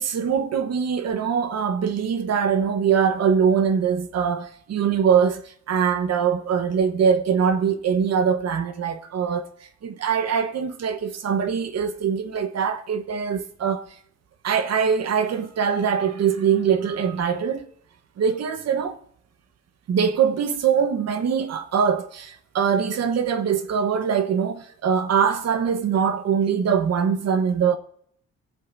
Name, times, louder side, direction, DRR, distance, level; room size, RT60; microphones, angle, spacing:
voice 1, 0.0-9.5 9.8-13.8 14.4-17.6 18.2-19.0 19.9-27.8, right 7 dB, 60° right, 1.0 m, -22 dB
19.5 x 7.7 x 2.6 m
cardioid pair, 90°, 30 cm